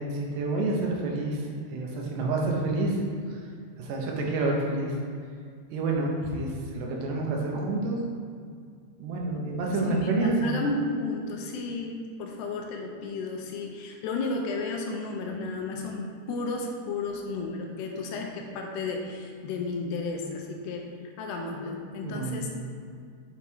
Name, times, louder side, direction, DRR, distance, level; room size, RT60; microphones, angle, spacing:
voice 1, 0.0-3.0 3.3-3.4 3.8-5.0 5.7-8.0 9.0-10.6 22.0-22.5, right 2 dB, 80° right, -1 dB, 3.2 m, -28 dB
voice 2, 9.8-20.9 21.2-22.5, left 3 dB, 80° left, 1 dB, 2.8 m, -33 dB
7.3 x 5.4 x 4.6 m, 2.2 s
omnidirectional pair, 4.9 m